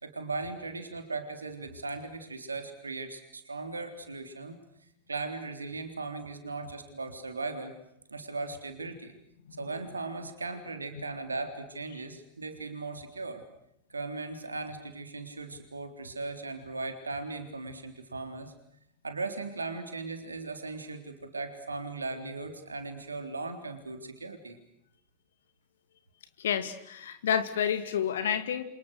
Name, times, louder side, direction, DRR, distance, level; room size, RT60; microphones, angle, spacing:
voice 1, 0.0-4.6 5.1-7.8 8.1-9.1 9.6-13.4 13.9-18.5 19.0-24.6, right 3 dB, 75° right, 8 dB, 3.6 m, -38 dB
voice 2, 26.4-28.6, left 8 dB, 60° left, 10 dB, 2.5 m, -29 dB
29.0 x 27.0 x 6.4 m, 0.76 s
figure-of-eight pair, 90°, 0 cm